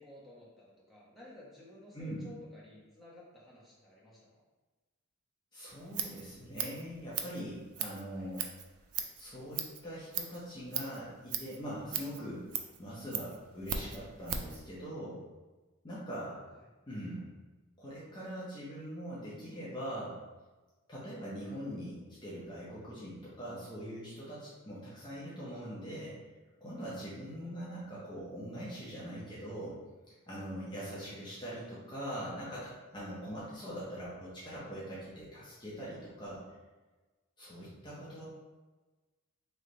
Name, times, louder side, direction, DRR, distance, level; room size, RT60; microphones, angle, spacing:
voice 1, 0.0-4.4 8.1-8.3 16.2-16.6 27.4-27.5 37.5-38.2, left 1 dB, ahead, -8 dB, 1.1 m, -54 dB
voice 2, 5.5-8.5 9.2-12.4 12.8-15.2 15.8-16.3 16.9-17.3 17.8-20.2 20.9-26.2 26.6-29.8 30.3-36.4 37.4-38.2, equal, 20° left, -8 dB, 0.8 m, -42 dB
Scissors, 5.7-14.6, right 8 dB, 85° right, 0.4 m, -39 dB
3.3 x 3.1 x 3.9 m, 1.2 s
head